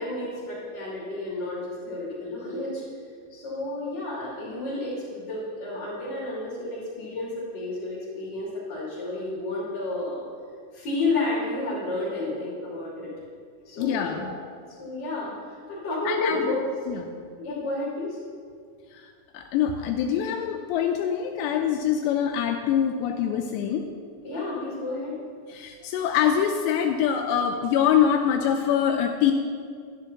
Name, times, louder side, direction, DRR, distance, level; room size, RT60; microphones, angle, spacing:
voice 1, 0.0-2.8 3.3-10.2 10.7-13.1 13.6-14.3 14.7-16.6 17.4-18.2 24.2-25.2, left 2 dB, 40° left, -13 dB, 3.9 m, -31 dB
voice 2, 13.8-14.4 16.1-16.4 16.9-17.1 18.9-23.8 25.5-29.3, left 8 dB, 85° left, 4 dB, 2.7 m, -24 dB
13.5 x 10.5 x 2.9 m, 2.2 s
omnidirectional pair, 5.1 m